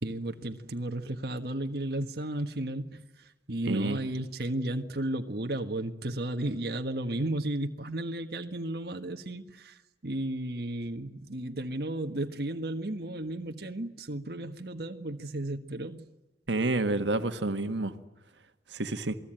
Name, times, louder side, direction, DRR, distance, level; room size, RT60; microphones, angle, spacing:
voice 1, 0.0-16.0, right 1 dB, 60° right, 1.5 m, -34 dB
voice 2, 3.7-4.0 16.5-17.9 18.7-19.2, right 2 dB, 85° right, 1.6 m, -29 dB
28.0 x 20.5 x 9.0 m
head